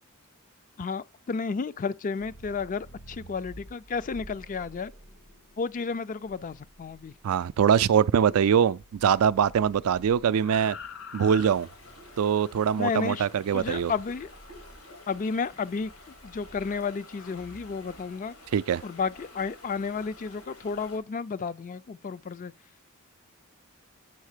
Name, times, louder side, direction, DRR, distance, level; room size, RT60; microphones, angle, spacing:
voice 1, 0.8-4.9 5.6-7.1 12.8-13.3 13.5-14.3 15.1-15.9 16.2-18.3 18.8-22.5, left 5 dB, 40° left, 0.4 m, -32 dB
sound 1, 2.1-8.5 8.8-12.2 13.6-14.8 15.5-18.1, left 3 dB, 70° left, 1.9 m, -48 dB
voice 2, 7.2-10.8 11.1-11.7 12.2-13.9 18.5-18.8, right 8 dB, 85° right, 0.4 m, -23 dB
sound 2, 11.5-21.0, left 2 dB, 85° left, 3.0 m, -50 dB
8.2 x 3.4 x 6.6 m
head